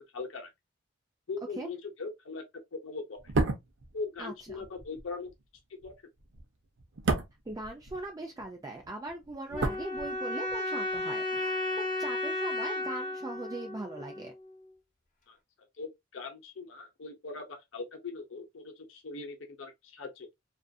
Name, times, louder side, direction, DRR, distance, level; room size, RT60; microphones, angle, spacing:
voice 1, 0.1-0.5 1.3-2.4 2.7-3.2 3.9-5.3 5.8-5.9 15.3-15.4 15.8-20.3, left 4 dB, 70° left, 0.7 m, -40 dB
sound 1, 3.2-8.5 8.7-10.6 10.8-11.0, right 3 dB, 65° right, 0.6 m, -34 dB
voice 2, 4.2-4.6 7.5-14.3, right 2 dB, 20° right, 0.4 m, -40 dB
sound 2, 9.5-14.5, left 1 dB, 40° left, 0.8 m, -34 dB
2.5 x 2.4 x 2.3 m
head